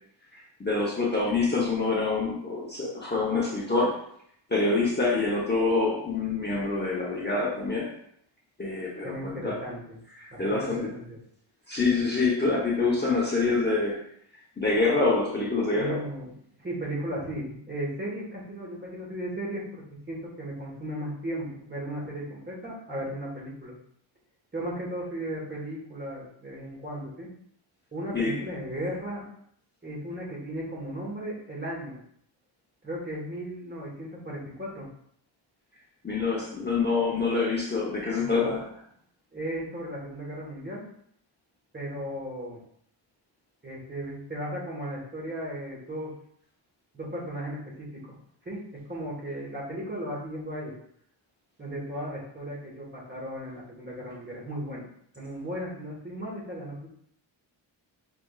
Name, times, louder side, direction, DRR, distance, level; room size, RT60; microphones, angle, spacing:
voice 1, 0.3-3.9 4.5-7.9 8.6-9.6 10.2-10.9 11.7-14.0 14.6-16.0 28.1-28.3 36.0-38.6, left 3 dB, 20° left, -5 dB, 0.9 m, -26 dB
voice 2, 9.0-10.0 10.3-11.2 15.7-16.3 16.6-23.8 24.5-27.3 27.9-29.3 29.8-32.0 32.8-34.9 38.2-38.6 39.3-40.8 41.7-42.6 43.6-46.1 46.9-48.2 48.4-50.8 51.6-54.8 55.1-56.9, right 1 dB, 20° right, -4 dB, 1.4 m, -36 dB
5.8 x 3.4 x 2.4 m, 0.68 s
wide cardioid pair, 130°, 47 cm